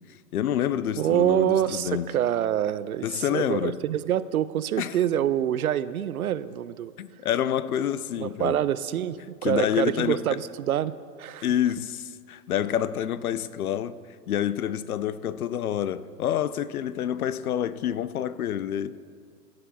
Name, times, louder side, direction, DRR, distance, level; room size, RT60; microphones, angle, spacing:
voice 1, 0.3-2.1 3.0-3.8 4.8-5.0 7.0-8.6 9.4-10.2 11.4-14.0 14.3-18.9, left 10 dB, 60° left, 0.6 m, -28 dB
voice 2, 1.0-6.9 8.2-11.5, right 10 dB, 60° right, 0.5 m, -26 dB
16.0 x 9.6 x 4.1 m
hypercardioid pair, 155°, 50 cm